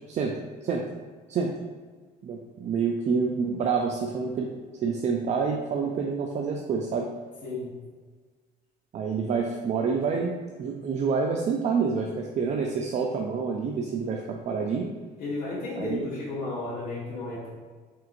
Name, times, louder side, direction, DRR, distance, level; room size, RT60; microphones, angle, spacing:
voice 1, 0.1-0.9 1.3-1.6 2.2-4.5 4.8-7.1 8.9-10.3 10.6-14.9 15.8-16.0, right 5 dB, 45° right, 1 dB, 0.4 m, -27 dB
voice 2, 7.4-7.7 15.2-17.5, left 2 dB, 60° left, -9 dB, 1.1 m, -33 dB
4.6 x 3.4 x 2.5 m, 1.5 s
cardioid pair, 110°, 17 cm